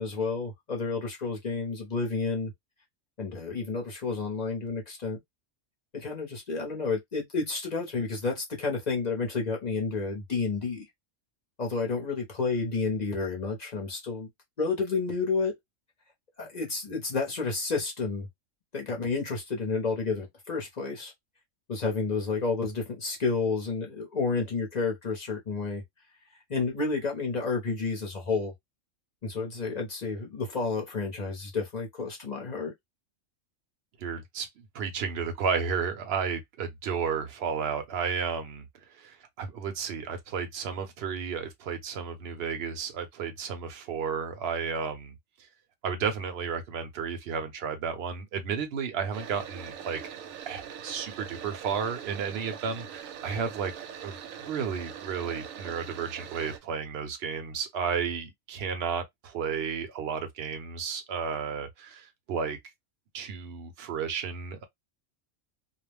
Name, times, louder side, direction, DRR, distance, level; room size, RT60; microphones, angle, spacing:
voice 1, 0.0-2.5 3.2-5.2 5.9-10.8 11.6-14.3 14.6-15.6 16.4-18.3 18.7-21.1 21.7-25.8 26.5-28.5 29.2-32.7, left 4 dB, 40° left, 0.7 m, -30 dB
voice 2, 34.0-38.7 39.0-45.1 45.8-50.0 50.4-53.7 54.0-54.1 54.5-62.6 63.1-64.6, right 6 dB, 60° right, 0.8 m, -32 dB
sound 1, 49.1-56.6, right 8 dB, 90° right, 1.0 m, -42 dB
2.4 x 2.1 x 3.2 m
omnidirectional pair, 1.3 m